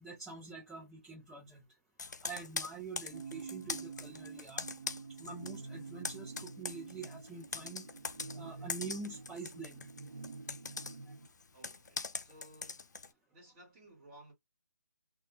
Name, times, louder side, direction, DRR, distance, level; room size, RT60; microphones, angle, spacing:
voice 1, 0.0-1.6 2.0-4.7 5.2-7.8 8.3-9.9, right 4 dB, 5° right, 0.5 m, -46 dB
Computer keyboard, 2.0-5.6 5.9-13.1, left 4 dB, 75° left, 0.4 m, -42 dB
sound 1, 3.1-11.3, right 4 dB, 60° right, 0.5 m, -48 dB
voice 2, 11.5-12.9 13.3-14.3, right 1 dB, 20° right, 1.2 m, -58 dB
2.1 x 2.1 x 2.9 m
figure-of-eight pair, 155°, 9 cm